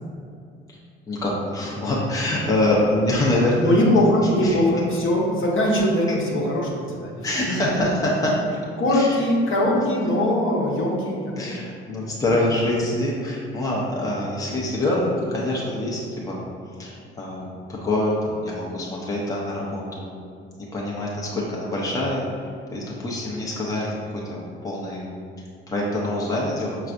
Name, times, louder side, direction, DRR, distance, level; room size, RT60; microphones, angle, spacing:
voice 1, 1.1-3.8 4.4-4.5 7.2-8.4 8.9-9.2 11.4-16.4 16.8-20.1 20.7-25.1 25.7-26.8, left 1 dB, 10° left, -4 dB, 0.8 m, -25 dB
voice 2, 3.6-7.7 8.8-11.5 12.0-12.1, left 1 dB, 40° left, -3 dB, 1.1 m, -21 dB
5.7 x 3.2 x 2.5 m, 2.3 s
figure-of-eight pair, 55°, 31 cm